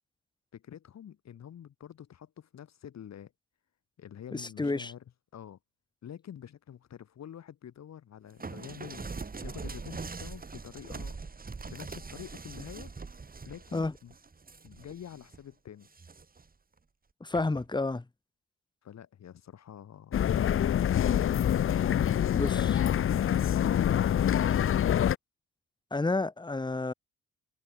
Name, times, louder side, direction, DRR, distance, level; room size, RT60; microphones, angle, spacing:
voice 1, 0.5-3.3 4.0-5.0 5.3-5.6 6.0-9.1 9.4-11.2 11.7-12.9 13.5-14.1 14.6-15.9 18.8-20.2, left 9 dB, 60° left, 4.8 m, -47 dB
voice 2, 4.3-4.9 13.7-13.9 17.2-18.0 22.3-22.8 25.9-26.9, left 3 dB, 15° left, 2.0 m, -30 dB
sound 1, 8.4-15.4 15.8-16.5 17.3-17.7, right 4 dB, 30° right, 6.6 m, -42 dB
sound 2, 20.1-25.1, left 10 dB, 45° left, 0.7 m, -25 dB
cardioid pair, 90°, 30 cm